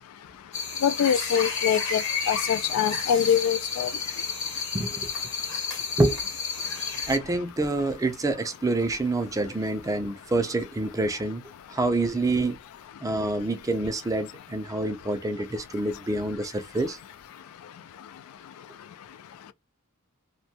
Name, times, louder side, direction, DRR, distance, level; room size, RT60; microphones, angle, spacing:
sound 1, 0.5-7.2, left 5 dB, 65° left, 1.0 m, -31 dB
voice 1, 0.8-2.0 2.3-3.9, left 8 dB, 80° left, 0.3 m, -24 dB
voice 2, 7.1-11.4 11.7-12.6 13.0-17.0, right 2 dB, 15° right, 0.3 m, -27 dB
2.6 x 2.2 x 2.7 m
head